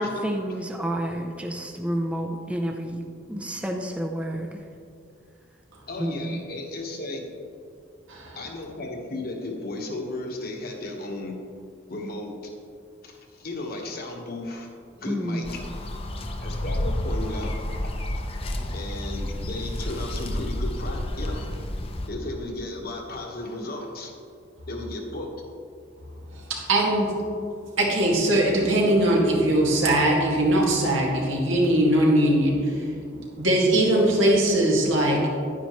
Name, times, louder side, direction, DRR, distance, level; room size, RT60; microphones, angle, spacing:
voice 1, 0.0-4.6 6.0-6.4 15.1-15.5, equal, 5° right, 2 dB, 0.5 m, -30 dB
voice 2, 5.9-7.2 8.3-11.4 11.9-12.5 13.0-14.7 15.0-15.6 16.4-17.5 17.8-17.9 18.7-21.5 22.1-24.1 24.7-25.3, left 2 dB, 50° left, 1 dB, 1.2 m, -34 dB
sound 1, 15.4-22.1, left 1 dB, 30° left, 0.7 m, -30 dB
voice 3, 26.3-27.2 27.8-35.3, right 1 dB, 90° right, -2 dB, 2.0 m, -21 dB
10.5 x 9.5 x 3.1 m, 2.4 s
head